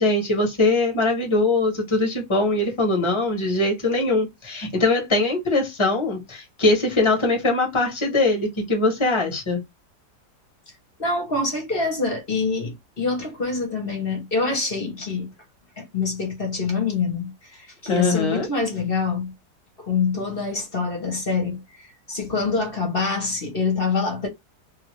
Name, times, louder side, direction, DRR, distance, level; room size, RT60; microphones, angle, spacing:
voice 1, 0.0-9.6 17.9-18.5, left 2 dB, 20° left, 1.1 m, -21 dB
voice 2, 11.0-15.3 15.8-19.3 19.8-21.6 22.1-24.3, left 4 dB, 35° left, 1.1 m, -25 dB
3.0 x 2.7 x 3.0 m
omnidirectional pair, 2.0 m